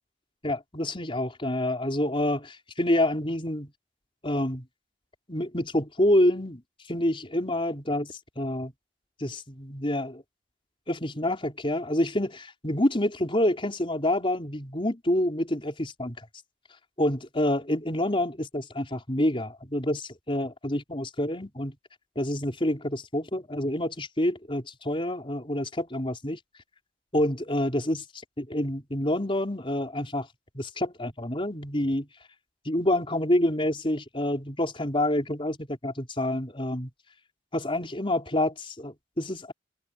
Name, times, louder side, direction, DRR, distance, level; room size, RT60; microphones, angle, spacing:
voice 1, 0.4-3.7 4.2-4.6 5.3-6.6 6.9-8.7 9.2-10.2 10.9-16.3 17.0-21.7 22.1-26.4 27.1-28.0 28.4-30.3 30.5-32.1 32.6-36.9 37.5-39.5, left 1 dB, 30° left, 4.8 m, -27 dB
head